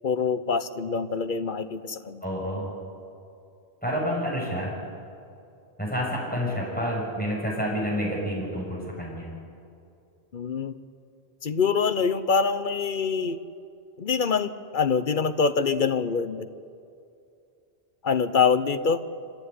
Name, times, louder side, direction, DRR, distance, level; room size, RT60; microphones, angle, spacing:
voice 1, 0.0-2.2 10.3-10.7 11.4-13.4 14.0-16.5 18.0-19.0, left 5 dB, 50° left, 11 dB, 1.0 m, -25 dB
voice 2, 2.2-2.7 3.8-4.7 5.8-9.3, equal, 10° left, -4 dB, 6.3 m, -29 dB
25.5 x 14.5 x 9.7 m, 2.6 s
omnidirectional pair, 1.1 m